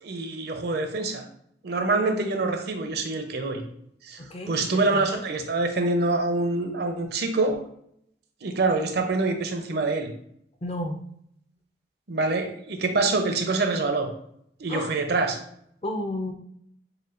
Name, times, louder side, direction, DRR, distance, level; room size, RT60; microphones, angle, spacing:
voice 1, 0.0-1.2 1.6-3.6 4.0-4.2 4.5-7.6 8.4-10.1 12.1-14.1 14.6-15.4, right 3 dB, 60° right, 5 dB, 0.6 m, -25 dB
voice 2, 4.2-5.2 10.6-11.0 14.7-15.0 15.8-16.3, left 1 dB, 35° left, 4 dB, 0.5 m, -32 dB
6.4 x 2.2 x 2.5 m, 0.70 s
head